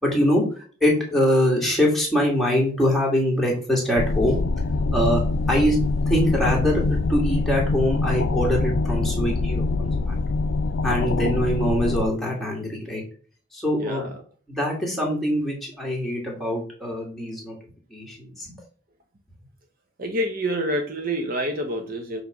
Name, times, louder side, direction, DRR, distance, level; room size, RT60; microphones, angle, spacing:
voice 1, 0.0-0.4 0.8-4.4 4.9-5.2 5.5-5.8 6.1-10.1 10.8-13.0 13.5-14.1 14.5-17.5 17.9-18.5, equal, ahead, -3 dB, 2.3 m, -23 dB
sound 1, 4.0-12.1, left 3 dB, 85° left, 0.5 m, -24 dB
voice 2, 13.8-14.1 20.0-22.2, equal, 45° right, 4 dB, 0.9 m, -27 dB
7.3 x 3.3 x 5.2 m, 0.42 s
head